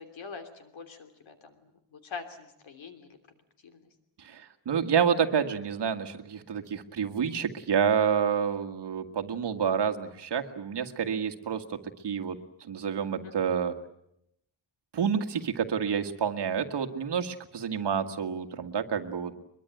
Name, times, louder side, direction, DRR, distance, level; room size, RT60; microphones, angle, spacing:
voice 1, 0.0-1.3 1.9-3.1 3.6-3.8 13.3-13.4, left 5 dB, 70° left, 7 dB, 3.1 m, -43 dB
voice 2, 4.2-11.8 12.0-12.4 12.7-13.7 14.9-19.4, right 7 dB, 55° right, 5 dB, 1.8 m, -28 dB
23.0 x 22.5 x 9.1 m, 0.79 s
wide cardioid pair, 170°, 49 cm